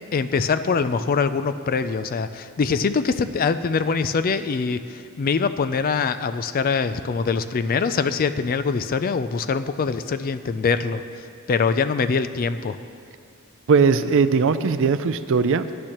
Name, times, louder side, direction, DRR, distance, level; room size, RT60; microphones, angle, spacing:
voice 1, 0.1-11.0 11.5-12.8, left 5 dB, 40° left, 11 dB, 0.4 m, -23 dB
voice 2, 13.7-15.7, right 5 dB, 60° right, 12 dB, 0.4 m, -19 dB
18.0 x 10.5 x 3.0 m, 2.3 s
head